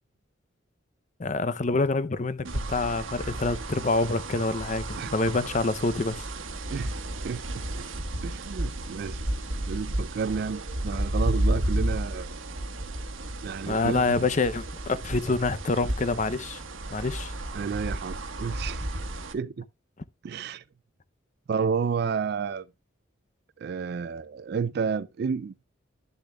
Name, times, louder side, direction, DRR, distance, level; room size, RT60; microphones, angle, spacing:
voice 1, 1.2-6.3 13.7-16.6 16.9-17.3, left 3 dB, 35° left, 0.6 m, -27 dB
sound 1, 2.4-19.3, right 1 dB, 80° right, 1.2 m, -32 dB
voice 2, 7.2-7.6 8.2-9.2 9.7-12.3 13.4-14.2 17.5-18.8 19.3-19.7 20.2-20.6 21.5-22.7 23.6-25.6, right 6 dB, 50° right, 0.3 m, -31 dB
12.0 x 6.8 x 2.3 m
head